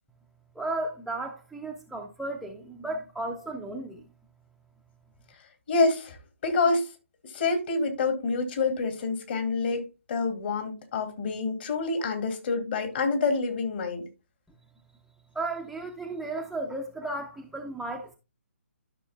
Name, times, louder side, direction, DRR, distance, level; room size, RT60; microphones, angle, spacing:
voice 1, 0.5-4.1 15.3-18.2, right 2 dB, ahead, 0.6 m, -34 dB
voice 2, 5.7-6.2 6.4-6.9 7.2-14.0, left 3 dB, 45° left, 2.5 m, -27 dB
12.5 x 6.3 x 2.3 m
figure-of-eight pair, 140°, 8 cm